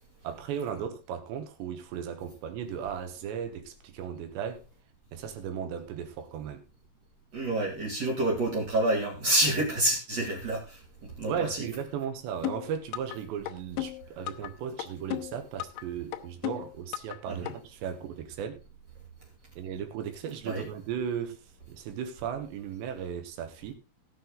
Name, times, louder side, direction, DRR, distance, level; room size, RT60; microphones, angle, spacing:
voice 1, 0.2-4.6 5.1-6.6 11.3-18.6 19.6-21.4 21.7-23.7, right 8 dB, 70° right, 3.2 m, -36 dB
voice 2, 7.3-11.6 17.3-17.5 20.4-20.7, right 1 dB, 40° right, 3.1 m, -28 dB
sound 1, 12.4-13.2 13.5-14.5 14.8-15.8 16.1-17.2 17.5-17.6, left 15 dB, 85° left, 3.4 m, -34 dB
18.0 x 6.8 x 3.7 m
omnidirectional pair, 5.8 m